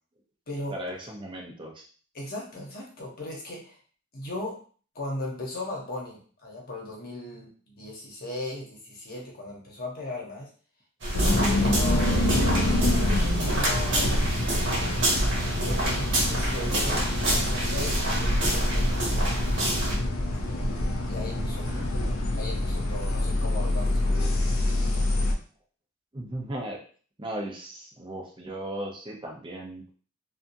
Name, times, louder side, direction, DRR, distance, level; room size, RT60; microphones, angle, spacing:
voice 1, 0.7-1.8 21.6-21.9 26.1-26.8 27.2-29.8, right 1 dB, 25° right, 0 dB, 0.6 m, -36 dB
voice 2, 2.1-3.8 4.1-4.6 4.9-10.5 11.1-18.9 20.3-24.7, left 1 dB, 45° left, -1 dB, 0.9 m, -38 dB
Walking down the hallway, 11.0-20.0, right 1 dB, 60° right, 1.3 m, -27 dB
corvallis-bus-ride, 11.1-25.3, left 1 dB, 80° left, 0.5 m, -26 dB
2.7 x 2.4 x 2.6 m, 0.42 s
head